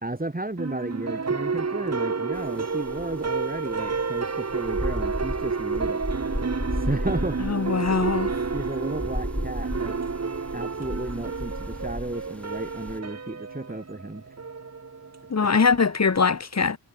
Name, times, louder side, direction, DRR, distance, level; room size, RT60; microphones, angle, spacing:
voice 1, 0.0-6.0 6.7-7.4 8.5-10.0 10.5-14.4, right 2 dB, 20° right, 2.7 m, -33 dB
sound 1, 0.6-16.2, right 4 dB, 35° right, 1.1 m, -31 dB
sound 2, 2.3-2.5 2.8-13.0, equal, 5° left, 1.5 m, -34 dB
voice 2, 7.4-8.3 15.3-16.8, left 5 dB, 35° left, 1.0 m, -22 dB
wide cardioid pair, 75°, 46 cm